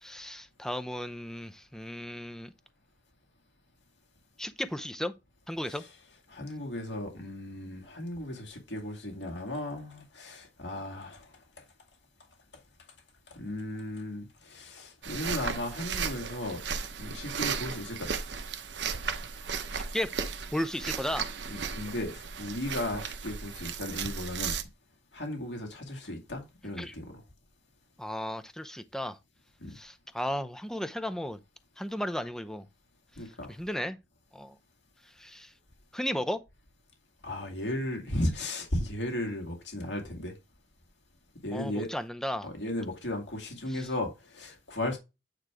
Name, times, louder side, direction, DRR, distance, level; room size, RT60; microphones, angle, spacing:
voice 1, 0.0-2.5 4.4-5.1 5.5-5.8 19.9-20.1 20.5-21.3 26.8-27.0 28.0-29.2 29.7-31.4 31.8-32.7 33.5-34.0 34.3-34.5 35.2-35.5 35.9-36.4 41.5-42.5 43.7-43.9, equal, 5° left, 0.5 m, -34 dB
voice 2, 6.3-11.3 13.3-16.6 17.0-18.1 21.5-24.6 25.1-27.2 29.6-29.8 33.2-33.5 37.2-40.3 41.4-41.9 42.4-45.0, left 1 dB, 75° left, 2.2 m, -35 dB
sound 1, 15.0-24.6, right 6 dB, 70° right, 0.9 m, -35 dB
9.0 x 3.1 x 4.8 m
head